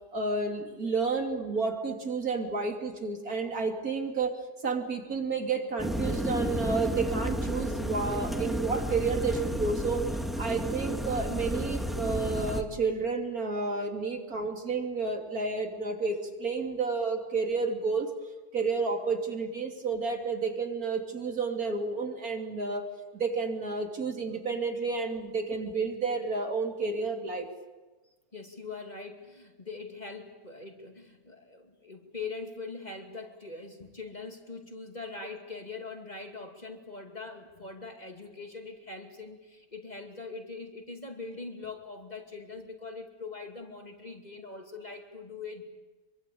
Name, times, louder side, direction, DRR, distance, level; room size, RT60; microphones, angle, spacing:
voice 1, 0.1-4.4 4.6-10.0 10.4-18.1 18.5-22.9 23.1-27.5, right 4 dB, 65° right, 3 dB, 3.5 m, -31 dB
sound 1, 5.8-12.6, equal, ahead, 2.0 m, -32 dB
voice 2, 28.3-45.6, left 4 dB, 25° left, 4 dB, 2.7 m, -42 dB
25.5 x 24.0 x 8.6 m, 1.1 s
omnidirectional pair, 1.6 m